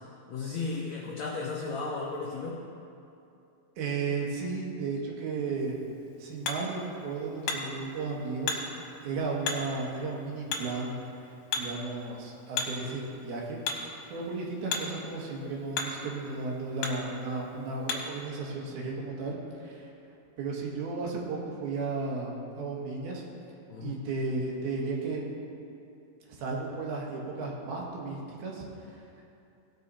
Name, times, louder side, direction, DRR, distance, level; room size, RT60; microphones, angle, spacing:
voice 1, 0.3-2.6 23.7-24.1, left 4 dB, 85° left, -2 dB, 1.5 m, -34 dB
voice 2, 3.8-5.8 6.2-8.6 9.0-11.0 11.6-19.9 20.4-23.2 23.8-25.2 26.3-29.0, right 3 dB, 75° right, -2 dB, 3.4 m, -34 dB
Hammer, 5.6-18.2, left 4 dB, 70° left, 2.5 m, -38 dB
17.0 x 6.7 x 4.2 m, 2.7 s
omnidirectional pair, 4.4 m